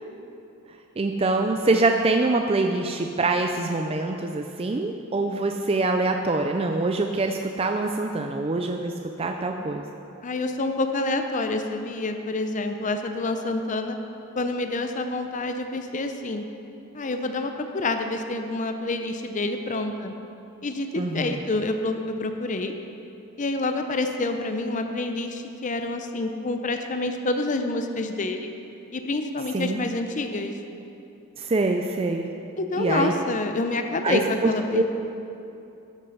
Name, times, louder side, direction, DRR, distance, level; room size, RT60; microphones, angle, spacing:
voice 1, 1.0-9.9 21.0-21.4 29.5-29.8 31.4-32.3 32.8-33.1 34.0-34.8, right 3 dB, 25° right, 4 dB, 0.4 m, -24 dB
voice 2, 10.2-14.0 14.4-16.4 16.9-20.1 20.6-20.9 21.1-22.7 23.4-28.5 28.9-30.5 32.6-34.8, left 2 dB, 35° left, 6 dB, 0.6 m, -27 dB
13.5 x 7.6 x 5.5 m, 2.8 s
head